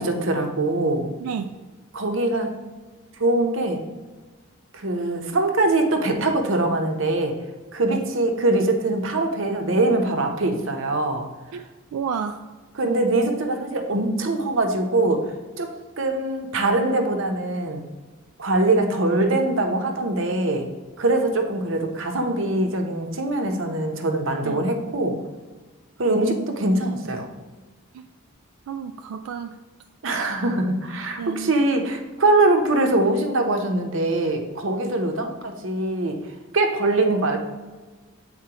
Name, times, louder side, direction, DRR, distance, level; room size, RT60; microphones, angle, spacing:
voice 1, 0.0-1.1 1.9-2.6 3.2-3.8 4.7-7.3 7.7-11.2 12.8-15.7 16.0-17.8 18.4-20.7 21.0-25.2 26.0-27.3 30.0-36.2 36.5-37.4, right 2 dB, 60° right, 4 dB, 0.8 m, -22 dB
voice 2, 1.2-1.5 7.9-8.0 11.5-11.6 11.9-12.4 24.4-24.6 26.1-26.5 27.9-28.1 28.7-29.6 31.2-31.5, right 6 dB, 90° right, 7 dB, 0.3 m, -31 dB
7.5 x 4.3 x 2.9 m, 1.3 s
head